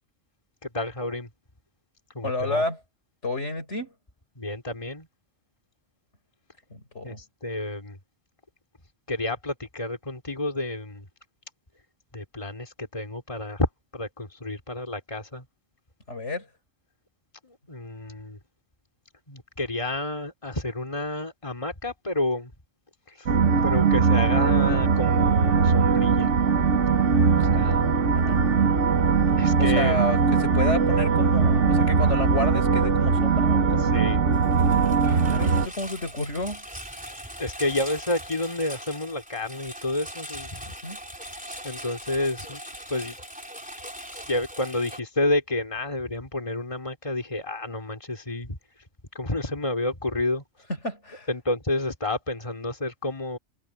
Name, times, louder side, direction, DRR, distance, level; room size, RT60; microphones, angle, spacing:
voice 1, 0.6-1.3 2.1-2.6 4.4-5.1 7.0-8.0 9.1-11.1 12.1-15.4 17.4-18.4 19.3-22.5 23.1-23.3 23.6-26.3 27.2-28.0 29.4-30.0 33.8-34.2 37.4-40.7 41.6-42.6 42.9-43.1 44.3-48.6 49.1-50.4 51.3-53.4, left 2 dB, 25° left, 3.2 m, -30 dB
voice 2, 2.2-2.8 3.2-3.9 6.7-7.2 16.1-16.5 28.1-28.5 29.6-33.9 35.0-36.7 40.7-41.0 50.8-51.3, left 2 dB, 70° left, 5.4 m, -30 dB
sound 1, 23.3-35.7, right 5 dB, 80° right, 1.6 m, -21 dB
Engine, 34.3-45.0, equal, 5° right, 3.7 m, -40 dB
omnidirectional pair, 1.2 m